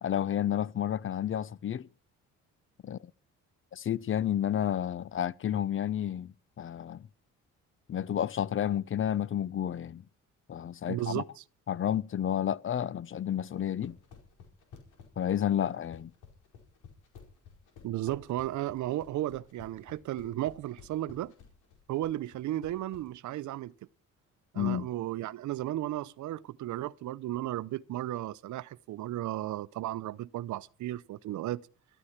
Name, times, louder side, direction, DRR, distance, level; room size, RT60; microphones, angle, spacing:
voice 1, 0.0-1.9 2.8-3.0 3.7-7.0 7.9-10.0 10.5-11.2 11.7-14.0 15.2-16.1 24.6-24.9, left 10 dB, 45° left, 0.6 m, -31 dB
voice 2, 10.9-11.4 17.8-21.3 21.9-23.7 24.5-31.6, right 14 dB, 75° right, 0.7 m, -34 dB
sound 1, 13.5-23.1, left 6 dB, 90° left, 4.7 m, -53 dB
13.5 x 13.0 x 5.9 m
cardioid pair, 90°, 30 cm